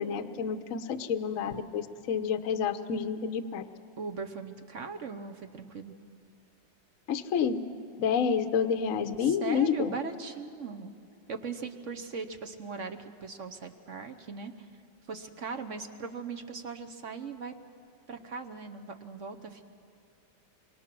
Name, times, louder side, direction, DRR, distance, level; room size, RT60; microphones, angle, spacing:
voice 1, 0.0-3.6 7.1-7.6 8.0-10.0, left 7 dB, 50° left, 9 dB, 1.1 m, -29 dB
voice 2, 4.0-5.9 9.2-10.9 11.3-14.5 15.1-17.5 18.1-19.7, right 4 dB, 50° right, 6 dB, 1.1 m, -39 dB
28.0 x 24.0 x 6.1 m, 2.6 s
omnidirectional pair, 2.2 m